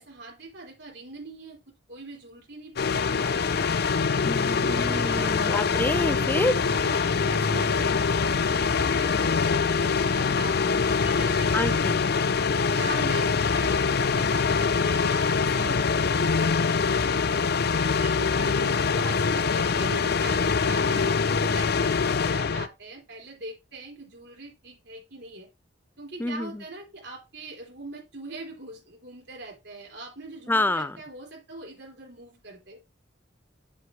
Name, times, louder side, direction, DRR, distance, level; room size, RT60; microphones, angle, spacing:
voice 1, 0.0-1.6 1.9-3.5 4.6-5.5 6.1-6.3 6.7-11.8 12.7-17.4 17.7-25.5 26.0-32.8, right 2 dB, 65° right, 3.7 m, -42 dB
sound 1, 2.8-22.7, left 5 dB, 55° left, 0.6 m, -24 dB
voice 2, 4.2-6.5 11.5-12.0 26.2-26.6 30.5-31.0, left 2 dB, 10° left, 0.4 m, -28 dB
8.4 x 7.6 x 3.3 m
head